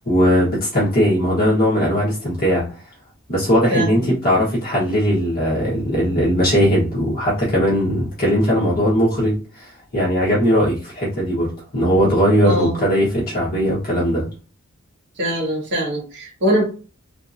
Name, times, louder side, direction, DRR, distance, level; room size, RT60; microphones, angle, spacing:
voice 1, 0.1-2.7 3.3-14.2, equal, 40° left, -6 dB, 1.2 m, -19 dB
voice 2, 3.7-4.1 12.4-12.8 15.2-16.6, equal, 50° right, -2 dB, 1.4 m, -22 dB
3.5 x 2.8 x 2.6 m, 0.36 s
head